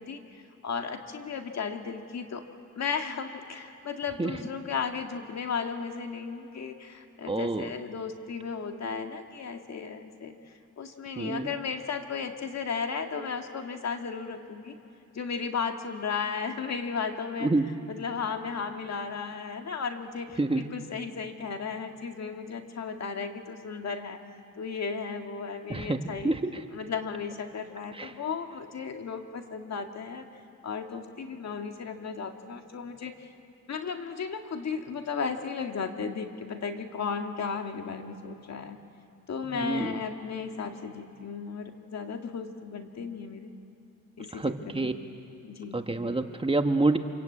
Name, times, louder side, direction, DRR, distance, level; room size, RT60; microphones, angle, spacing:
voice 1, 0.0-2.4 2.8-10.3 10.8-14.7 15.1-17.5 17.9-24.2 24.6-26.4 26.7-30.2 30.6-33.3 33.7-38.8 39.3-43.5 44.2-44.9 45.4-45.8, left 5 dB, 55° left, 5 dB, 2.0 m, -35 dB
voice 2, 7.3-7.7 11.2-11.5 17.4-17.7 20.4-20.6 25.7-26.6 27.9-28.1 39.5-40.0 44.3-44.9 45.7-47.0, right 2 dB, 15° right, 6 dB, 1.5 m, -27 dB
26.5 x 22.5 x 8.7 m, 3.0 s
cardioid pair, 80°, 31 cm